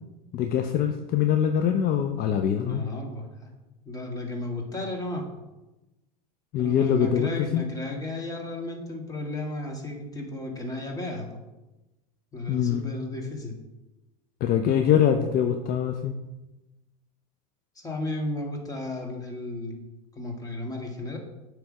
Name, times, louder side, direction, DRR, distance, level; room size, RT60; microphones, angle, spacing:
voice 1, 0.3-2.8 6.5-7.6 12.5-12.8 14.4-16.1, left 9 dB, 45° left, 6 dB, 0.6 m, -23 dB
voice 2, 2.6-3.5 3.9-5.3 6.6-11.4 12.3-13.5 17.8-19.8 20.1-21.2, left 2 dB, 15° left, 0 dB, 1.9 m, -34 dB
7.8 x 3.4 x 6.2 m, 1.0 s
hypercardioid pair, 85°, 21 cm